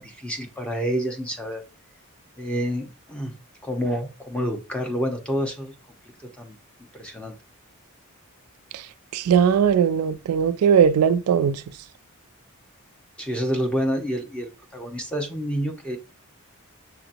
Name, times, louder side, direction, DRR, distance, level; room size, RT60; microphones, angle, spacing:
voice 1, 0.0-1.6 2.4-3.3 3.6-5.7 6.2-6.6 6.9-7.3 13.2-16.0, equal, 5° left, 0.7 m, -28 dB
voice 2, 9.1-11.6, right 7 dB, 80° right, 0.3 m, -19 dB
6.7 x 2.8 x 2.5 m
head